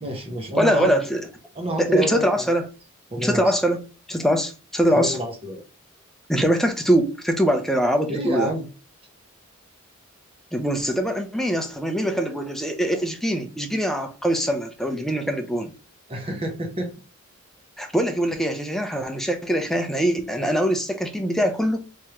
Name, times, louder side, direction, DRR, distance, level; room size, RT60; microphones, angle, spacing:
voice 1, 0.0-0.9 1.5-2.5 3.1-3.5 4.9-5.6 8.1-8.7 16.1-16.9, right 1 dB, 30° right, 0.8 m, -29 dB
voice 2, 0.6-1.3 1.8-2.7 3.2-5.2 6.3-8.5 10.5-15.7 17.8-21.8, equal, ahead, 0.5 m, -23 dB
3.5 x 3.3 x 2.8 m
head